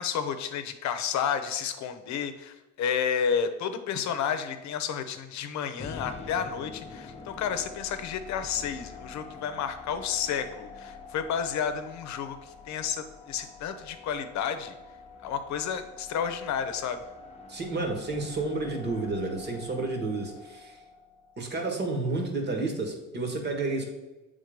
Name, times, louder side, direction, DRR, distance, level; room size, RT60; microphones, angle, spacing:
voice 1, 0.0-14.8 15.2-17.0, left 7 dB, 60° left, 9 dB, 0.8 m, -31 dB
sound 1, 5.8-21.9, left 4 dB, 20° left, 0.9 m, -46 dB
voice 2, 17.5-20.8 21.4-23.8, right 3 dB, 35° right, 3 dB, 1.5 m, -31 dB
7.9 x 3.8 x 5.1 m, 1.1 s
cardioid pair, 125°, 32 cm